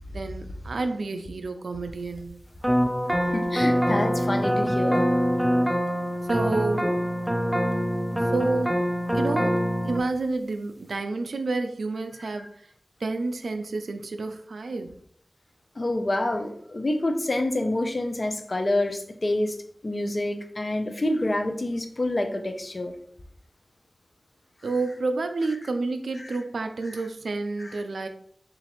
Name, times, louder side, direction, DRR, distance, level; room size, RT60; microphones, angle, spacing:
voice 1, 0.1-2.4 6.3-7.0 8.3-8.8 9.1-9.6 9.8-12.5 13.0-14.9 24.6-28.1, right 3 dB, 90° right, 7 dB, 0.3 m, -29 dB
sound 1, 2.6-10.0, equal, 5° right, 0.4 m, -24 dB
voice 2, 3.3-5.0 15.8-19.6 19.8-22.9 26.2-26.4 26.9-27.0 27.6-27.8, left 1 dB, 50° left, 6 dB, 0.5 m, -27 dB
3.9 x 2.4 x 2.9 m, 0.63 s
cardioid pair, 45°, 0 cm